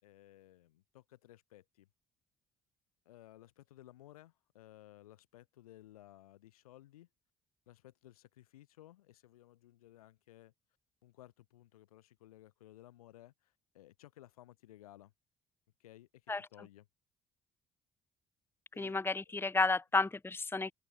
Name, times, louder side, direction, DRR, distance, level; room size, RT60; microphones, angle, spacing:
voice 1, 0.0-1.9 3.1-7.1 7.7-10.5 11.0-15.1 15.8-16.9 18.7-19.0 19.3-19.4, left 14 dB, 75° left, 7.4 m, -58 dB
voice 2, 18.8-20.7, left 3 dB, 10° left, 1.0 m, -32 dB
figure-of-eight pair, 45°, 19 cm